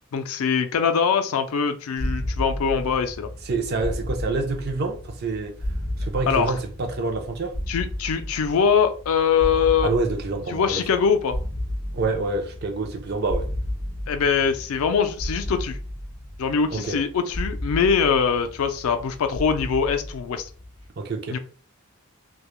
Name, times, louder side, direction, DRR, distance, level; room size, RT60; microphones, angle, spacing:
voice 1, 0.1-3.3 6.3-6.5 7.7-9.9 10.5-11.4 14.1-15.8 16.4-20.5 21.3-21.4, left 6 dB, 75° left, 0.4 m, -22 dB
sound 1, 2.0-20.9, left 1 dB, 90° right, 1.0 m, -33 dB
voice 2, 3.4-5.6 6.0-7.5 9.8-10.9 11.9-13.5 16.7-17.0 21.0-21.4, right 3 dB, 45° right, 0.4 m, -27 dB
2.2 x 2.0 x 2.9 m
head